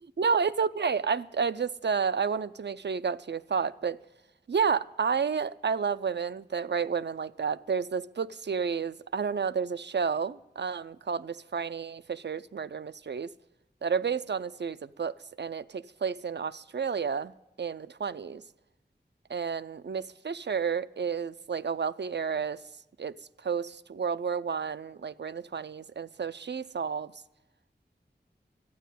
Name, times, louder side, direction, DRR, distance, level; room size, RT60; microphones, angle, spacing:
voice 1, 0.2-4.0 4.5-13.3 13.8-17.3 17.6-18.4 19.3-22.6 23.0-23.2 23.4-27.1, right 6 dB, 75° right, 14 dB, 0.5 m, -31 dB
12.5 x 9.2 x 9.1 m, 0.99 s
wide cardioid pair, 40°, 18 cm